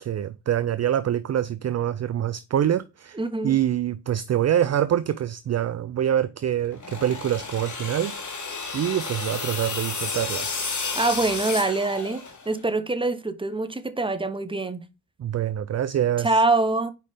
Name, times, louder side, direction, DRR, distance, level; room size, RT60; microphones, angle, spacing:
voice 1, 0.0-3.2 3.4-8.1 8.7-10.5 15.2-16.3, right 10 dB, 40° right, 0.5 m, -25 dB
voice 2, 3.1-3.6 10.9-14.9 16.2-16.9, right 2 dB, 10° right, 0.9 m, -24 dB
sound 1, 6.7-12.6, left 4 dB, 40° left, 1.9 m, -32 dB
4.9 x 4.5 x 4.9 m
supercardioid pair, 50°, 44 cm